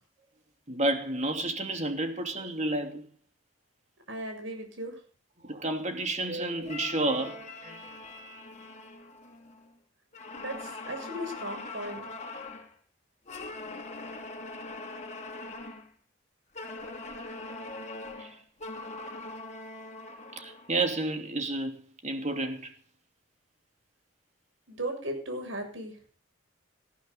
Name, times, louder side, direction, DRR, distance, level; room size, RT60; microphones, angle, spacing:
voice 1, 0.7-3.1 5.4-7.9 18.2-18.4 20.3-22.7, right 2 dB, 35° right, 3.0 m, -31 dB
voice 2, 4.1-4.9 10.4-12.0 24.7-25.9, right 1 dB, 75° right, 7.3 m, -36 dB
sound 1, 6.6-9.7 10.1-12.7 13.3-15.9 16.5-20.8, left 3 dB, 35° left, 2.9 m, -42 dB
19.5 x 14.0 x 4.1 m
head